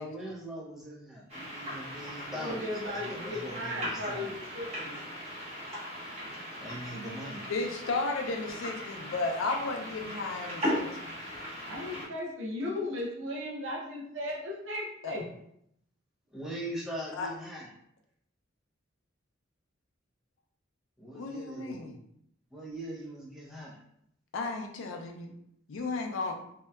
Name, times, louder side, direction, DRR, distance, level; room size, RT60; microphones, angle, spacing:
voice 1, 0.0-4.3 6.6-7.5 16.3-17.7 21.0-21.9 22.5-23.8, right 1 dB, ahead, -6 dB, 0.6 m, -41 dB
sound 1, 1.3-12.1, equal, 35° right, 0.9 m, -38 dB
voice 2, 2.3-5.0 11.7-15.3, left 1 dB, 70° right, -3 dB, 0.6 m, -36 dB
voice 3, 7.5-11.2 15.0-15.2 17.2-17.3 21.1-22.0 24.3-25.3 25.7-26.4, left 3 dB, 85° left, 3 dB, 0.4 m, -34 dB
2.7 x 2.2 x 2.3 m, 0.73 s
head